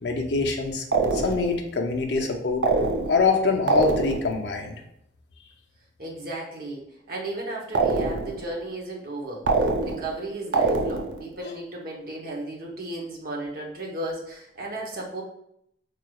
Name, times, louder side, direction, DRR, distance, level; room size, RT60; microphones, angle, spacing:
voice 1, 0.0-0.9 1.1-2.6 3.1-4.8, left 4 dB, 60° left, 2 dB, 0.5 m, -24 dB
sound 1, 0.9-1.6 2.6-3.3 3.7-4.4 7.7-8.5 9.5-10.2 10.5-11.3, right 3 dB, 65° right, 0.4 m, -24 dB
voice 2, 6.0-15.2, right 2 dB, 50° right, -2 dB, 0.9 m, -35 dB
4.5 x 3.1 x 2.3 m, 0.76 s
head